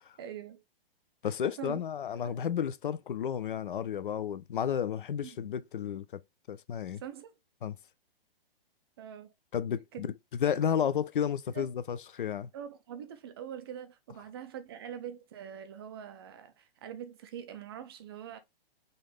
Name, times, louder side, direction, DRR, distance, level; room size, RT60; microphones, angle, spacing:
voice 1, 0.2-0.6 1.4-1.8 2.2-2.4 5.2-5.6 7.0-7.3 9.0-9.3 9.9-10.1 11.5-11.7 12.5-18.4, right 9 dB, 25° right, 0.4 m, -43 dB
voice 2, 1.2-6.2 6.5-7.0 7.6-7.8 9.5-10.1 10.4-12.5, left 8 dB, 60° left, 0.5 m, -32 dB
3.9 x 2.6 x 3.4 m
figure-of-eight pair, 115°, 29 cm